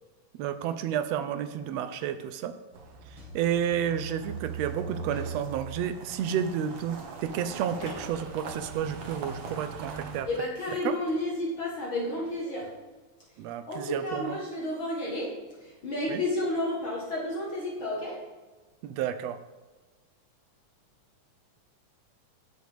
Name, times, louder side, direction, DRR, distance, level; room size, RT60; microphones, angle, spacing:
voice 1, 0.3-2.5 3.3-10.3 10.8-10.9 13.4-14.4 16.1-16.2 18.8-19.4, right 9 dB, 75° right, 10 dB, 1.7 m, -31 dB
sound 1, 2.7-10.2, right 4 dB, 55° right, 1.5 m, -40 dB
sound 2, 4.9-5.6 7.7-8.2 10.8-11.2, left 1 dB, 90° left, 4.3 m, -44 dB
voice 2, 10.2-12.8 13.7-18.3, left 1 dB, 50° left, -3 dB, 2.2 m, -32 dB
17.5 x 6.4 x 3.6 m, 1.3 s
omnidirectional pair, 3.3 m